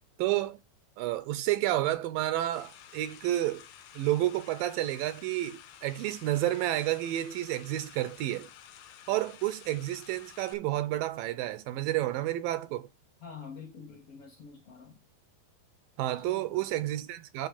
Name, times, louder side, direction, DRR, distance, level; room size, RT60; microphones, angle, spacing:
voice 1, 0.2-0.6 1.0-3.6 4.0-8.5 9.1-12.9 16.0-17.5, right 14 dB, 80° right, 2.3 m, -30 dB
sound 1, 2.5-10.5, left 10 dB, 75° left, 1.7 m, -52 dB
voice 2, 13.2-15.0 16.2-16.6, left 5 dB, 55° left, 1.8 m, -47 dB
9.4 x 3.3 x 6.4 m
omnidirectional pair, 4.2 m